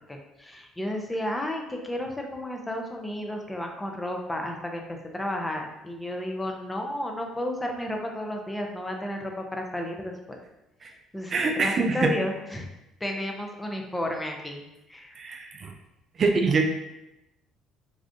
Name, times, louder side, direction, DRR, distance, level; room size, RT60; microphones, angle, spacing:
voice 1, 0.1-4.9 5.1-10.4 10.8-11.3 11.6-12.7 13.0-14.6 14.9-15.2, left 1 dB, 10° left, 2 dB, 0.6 m, -32 dB
voice 2, 11.3-12.1 15.2-15.7 16.2-16.7, right 3 dB, 45° right, 4 dB, 0.4 m, -24 dB
3.4 x 2.4 x 2.6 m, 0.90 s
supercardioid pair, 75°, 0 cm